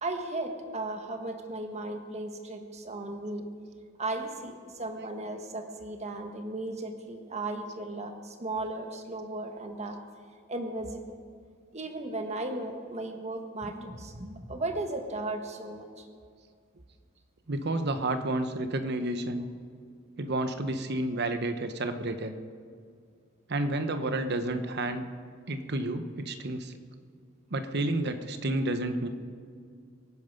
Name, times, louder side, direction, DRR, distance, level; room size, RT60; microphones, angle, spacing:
voice 1, 0.0-3.5 4.0-10.0 10.5-11.0 11.7-16.0, right 2 dB, 35° right, 5 dB, 1.4 m, -36 dB
voice 2, 17.5-19.5 20.2-22.4 23.5-25.0 25.5-26.7 27.5-29.1, right 2 dB, 55° right, 9 dB, 1.0 m, -30 dB
23.5 x 9.4 x 5.3 m, 2.2 s
head